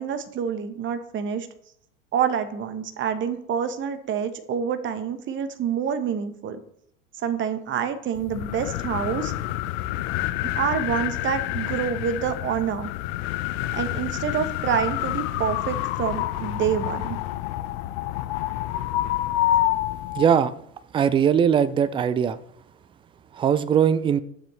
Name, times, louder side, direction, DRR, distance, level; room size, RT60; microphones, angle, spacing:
voice 1, 0.0-1.5 2.1-6.6 7.2-9.3 10.5-12.9 13.7-17.2, right 8 dB, 30° right, 10 dB, 1.1 m, -27 dB
sound 1, 8.2-20.3, left 13 dB, 50° left, 0.7 m, -28 dB
voice 2, 20.1-20.5 20.9-22.4 23.3-24.2, right 8 dB, 15° right, 15 dB, 0.4 m, -20 dB
12.0 x 7.2 x 3.3 m, 0.71 s
hypercardioid pair, 90°, 40 cm